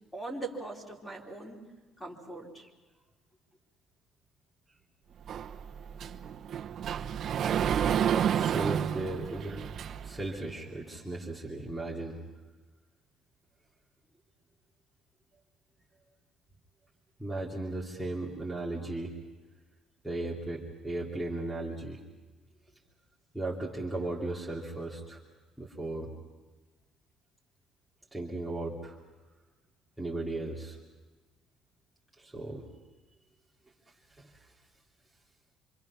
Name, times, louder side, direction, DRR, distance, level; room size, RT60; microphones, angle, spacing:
voice 1, 0.1-1.6 2.0-2.7, right 2 dB, 10° left, -1 dB, 3.7 m, -40 dB
Sliding door, 5.3-10.2, right 9 dB, 50° right, 1.0 m, -30 dB
voice 2, 8.3-9.7 10.0-12.2 17.2-19.1 20.0-22.0 23.3-25.2 25.6-26.1 28.1-29.0 30.0-30.8 32.2-32.6 34.2-34.5, right 2 dB, 5° right, -6 dB, 2.8 m, -36 dB
27.0 x 25.5 x 6.0 m, 1.2 s
cardioid pair, 130°, 0 cm